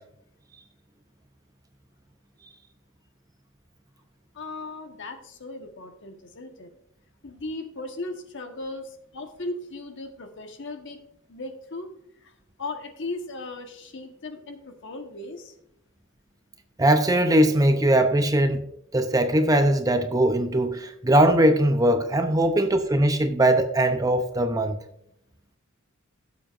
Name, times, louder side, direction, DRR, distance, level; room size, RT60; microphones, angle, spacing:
voice 1, 4.3-6.7 7.2-11.0 11.3-11.9 12.2-12.3 12.6-15.5 22.4-22.5, left 2 dB, 55° left, 1.3 m, -37 dB
voice 2, 16.8-18.6 18.9-24.8, right 1 dB, 15° right, 0.6 m, -20 dB
16.0 x 7.5 x 2.5 m
head